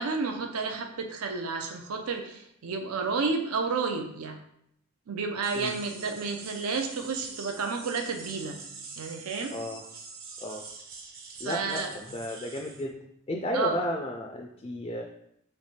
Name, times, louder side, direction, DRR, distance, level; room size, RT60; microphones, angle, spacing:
voice 1, 0.0-4.4 5.1-8.6 9.0-9.5 11.4-11.9 13.5-13.8, right 4 dB, 80° right, 5 dB, 0.5 m, -31 dB
sound 1, 5.4-12.8, right 4 dB, 40° right, 0.7 m, -45 dB
voice 2, 9.5-9.8 10.4-10.6 11.4-13.0 13.3-15.0, left 1 dB, 25° left, 2 dB, 0.3 m, -33 dB
3.3 x 3.2 x 4.2 m, 0.73 s
head